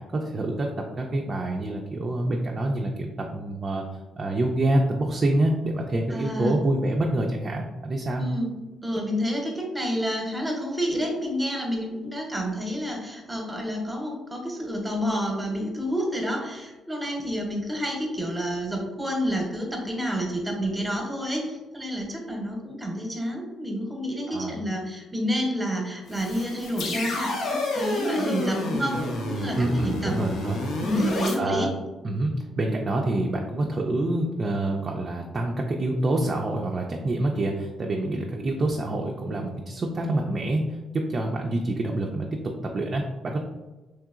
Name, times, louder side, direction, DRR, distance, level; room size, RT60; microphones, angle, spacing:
voice 1, 0.0-3.8 4.2-8.2 24.3-24.6 29.6-30.6 31.4-31.7 32.0-42.3 42.6-43.4, right 1 dB, 40° right, 0 dB, 0.3 m, -26 dB
voice 2, 6.1-6.6 8.2-8.5 8.8-30.2 30.8-31.7, equal, 10° right, 0 dB, 0.8 m, -29 dB
sound 1, 26.1-31.3, left 1 dB, 80° left, 0.6 m, -29 dB
3.1 x 2.8 x 2.4 m, 1.2 s
cardioid pair, 90°, 0 cm